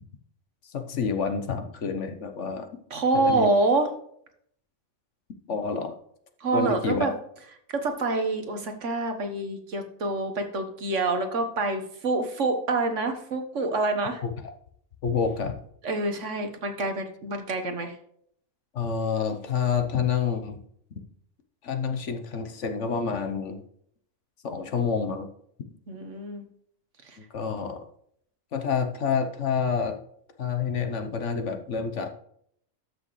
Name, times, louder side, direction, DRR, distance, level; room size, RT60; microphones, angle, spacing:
voice 1, 0.6-2.7 3.1-3.5 5.5-6.0 6.5-7.1 14.2-14.5 15.0-15.5 18.7-20.6 21.6-23.6 24.4-25.3 27.3-27.9 28.5-30.0 30.4-32.1, left 6 dB, 60° left, 7 dB, 1.2 m, -28 dB
voice 2, 2.9-3.9 6.4-7.1 7.7-14.2 15.8-18.0 25.9-26.4 27.0-27.2, right 2 dB, 60° right, 6 dB, 1.5 m, -27 dB
12.5 x 6.2 x 3.2 m, 0.67 s
omnidirectional pair, 1.4 m